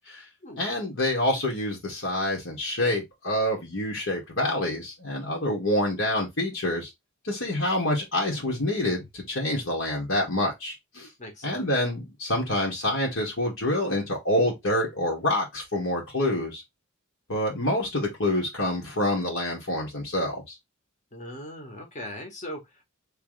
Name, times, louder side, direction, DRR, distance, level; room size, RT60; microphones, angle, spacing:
voice 1, 0.6-6.9 7.2-11.1 11.4-16.6 17.3-20.6, left 1 dB, 65° left, 1.9 m, -27 dB
voice 2, 11.2-11.7 21.1-22.8, left 1 dB, 35° left, 1.5 m, -40 dB
3.4 x 3.3 x 3.2 m
head